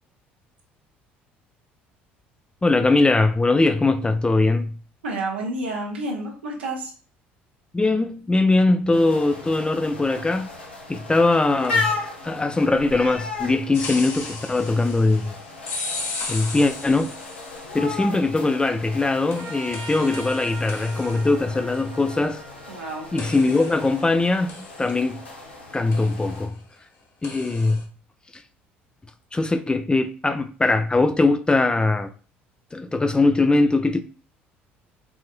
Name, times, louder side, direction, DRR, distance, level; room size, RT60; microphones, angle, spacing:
voice 1, 2.6-4.8 7.7-10.5 10.9-11.9 12.2-15.3 16.3-17.1 17.7-22.4 23.1-24.5 24.8-25.2 25.7-26.6 27.2-27.9 28.3-28.4 29.3-32.1 32.7-34.0, left 2 dB, 15° left, 0.4 m, -21 dB
voice 2, 5.0-6.9 22.7-23.1, right 2 dB, 80° right, 1.0 m, -29 dB
sound 1, 8.9-26.5, left 3 dB, 85° left, 0.8 m, -35 dB
sound 2, 13.7-18.0 19.3-22.8 23.2-25.5 25.9-26.4 27.2-27.8, left 3 dB, 50° left, 1.1 m, -37 dB
Trumpet, 19.4-23.9, right 2 dB, 60° right, 0.8 m, -42 dB
4.8 x 2.7 x 2.5 m
figure-of-eight pair, 55°, 6 cm